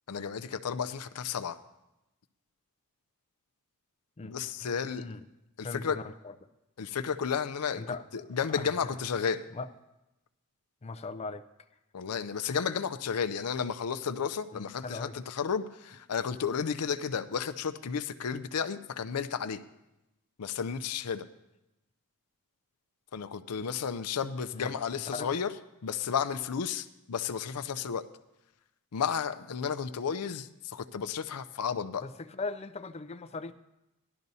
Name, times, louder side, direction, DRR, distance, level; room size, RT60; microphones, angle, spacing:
voice 1, 0.1-1.6 4.2-5.1 5.6-6.0 6.8-7.8 8.1-9.5 11.9-19.6 20.4-21.3 23.1-25.5 25.8-28.0 28.9-32.1, left 6 dB, 90° left, 11 dB, 0.5 m, -32 dB
voice 2, 4.6-5.2 5.6-6.3 7.8-8.0 8.5-8.8 9.5-9.7 10.8-11.4 14.5-15.1 24.5-24.8 25.1-25.3 32.0-33.5, left 3 dB, 30° left, 9 dB, 0.4 m, -39 dB
17.5 x 12.0 x 2.7 m, 0.93 s
head